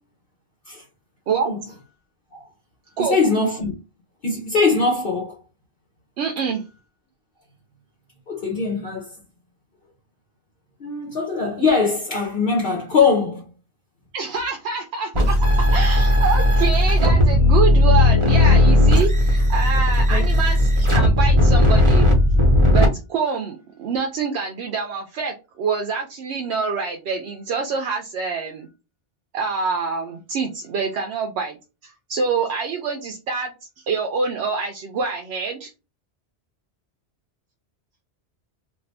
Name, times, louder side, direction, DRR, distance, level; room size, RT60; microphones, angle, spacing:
voice 1, 3.0-3.7 4.2-5.4 8.3-9.1 10.8-13.5 20.1-20.2, left 4 dB, 60° left, 1.0 m, -21 dB
voice 2, 6.2-6.6 14.1-22.2 22.7-28.7 29.3-31.6 31.8-33.5 33.9-35.7, right 5 dB, 80° right, 0.8 m, -26 dB
sound 1, 15.1-22.9, left 1 dB, 30° right, 0.9 m, -16 dB
2.6 x 2.5 x 3.3 m
omnidirectional pair, 1.1 m